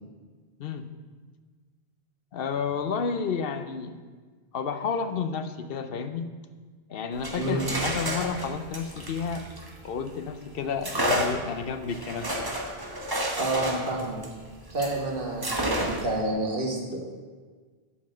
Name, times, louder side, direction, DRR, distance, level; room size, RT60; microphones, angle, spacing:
voice 1, 2.3-4.0 4.5-6.3 6.9-9.5 9.8-12.3, left 6 dB, 65° left, 10 dB, 0.8 m, -31 dB
sound 1, 7.1-10.2 10.8-15.0 15.4-16.2, right 1 dB, 20° right, 1.1 m, -31 dB
voice 2, 13.4-14.2 14.7-17.1, right 2 dB, 60° right, 0 dB, 1.8 m, -29 dB
8.3 x 5.7 x 7.4 m, 1.5 s
omnidirectional pair, 1.1 m